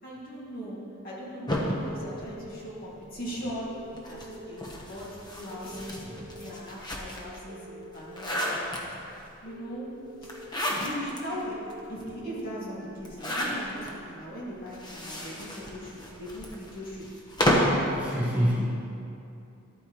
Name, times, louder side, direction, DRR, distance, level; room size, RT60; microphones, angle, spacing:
voice 1, 0.0-8.8 9.4-10.3 10.8-17.2 17.7-18.2, equal, 45° left, -7 dB, 2.2 m, -39 dB
sound 1, 1.5-3.1 3.9-7.4 7.8-9.2 10.2-11.2 11.7-11.8 12.0-12.1 13.0-13.9 14.7-17.9, equal, 20° left, 1.1 m, -31 dB
sound 2, 1.5-2.6 3.5-4.5 5.5-6.5 7.5-8.5 9.5-10.5 11.4-12.5 13.4-13.5, right 2 dB, 40° right, 0.7 m, -46 dB
voice 2, 17.9-18.8, equal, 10° right, -8 dB, 1.7 m, -27 dB
12.5 x 9.1 x 3.1 m, 2.7 s
head